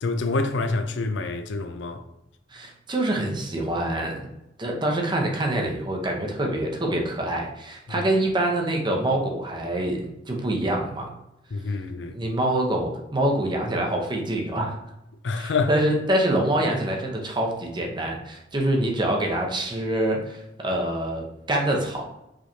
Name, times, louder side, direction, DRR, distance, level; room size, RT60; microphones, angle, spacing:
voice 1, 0.0-2.0 11.5-12.2 15.2-15.7, left 3 dB, 70° left, 0.4 m, -27 dB
voice 2, 2.5-4.3 4.6-11.1 12.1-14.8 15.3-22.0, right 1 dB, 25° right, 0.8 m, -25 dB
5.0 x 3.2 x 2.7 m
head